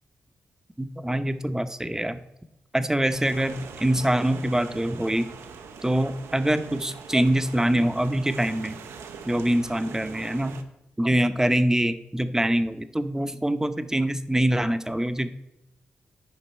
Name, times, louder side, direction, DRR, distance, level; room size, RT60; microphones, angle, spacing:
voice 1, 0.8-2.2 2.7-5.3 5.8-8.8 9.3-10.6 11.0-15.3, right 1 dB, 10° right, 10 dB, 0.7 m, -24 dB
sound 1, 3.1-10.6, right 5 dB, 85° right, 0.7 m, -42 dB
10.0 x 5.3 x 4.3 m, 0.90 s
supercardioid pair, 45°, 4 cm